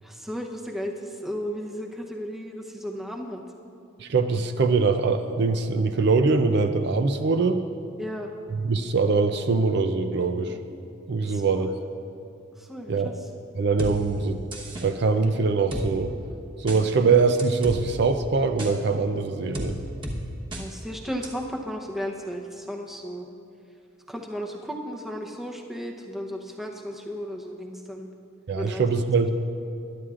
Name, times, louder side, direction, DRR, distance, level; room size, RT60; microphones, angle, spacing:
voice 1, 0.0-3.4 8.0-8.3 11.2-11.7 12.6-13.2 20.6-23.3 24.1-28.1 28.6-28.8, equal, ahead, 0 dB, 0.7 m, -34 dB
voice 2, 4.0-7.6 8.5-10.6 11.1-11.7 12.9-13.1 13.6-14.4 14.8-16.1 16.6-19.8 28.5-29.3, right 4 dB, 50° right, 8 dB, 0.4 m, -23 dB
sound 1, 13.8-13.9 14.5-14.9 15.7-15.8 16.7-16.8 17.4-17.8 18.6-18.7 19.5-19.7 20.0-20.2 20.5-20.6 21.2-21.3, equal, 25° right, 1.1 m, -32 dB
21.0 x 11.0 x 2.5 m, 2.7 s
head